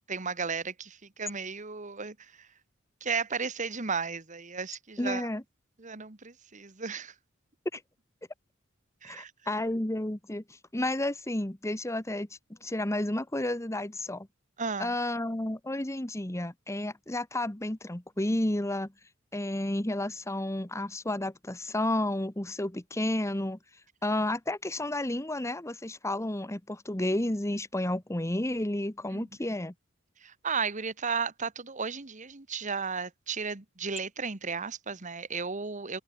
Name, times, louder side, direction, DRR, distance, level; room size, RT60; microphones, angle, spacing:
voice 1, 0.0-2.5 3.0-5.3 5.8-7.1 9.0-9.3 14.6-14.9 29.1-29.6 30.2-36.0, right 5 dB, 35° right, 1.4 m, -34 dB
voice 2, 5.0-5.4 7.7-7.8 9.0-10.4 10.7-12.3 12.6-14.3 14.8-18.9 19.3-23.6 24.0-29.7, left 1 dB, 15° left, 1.2 m, -31 dB
head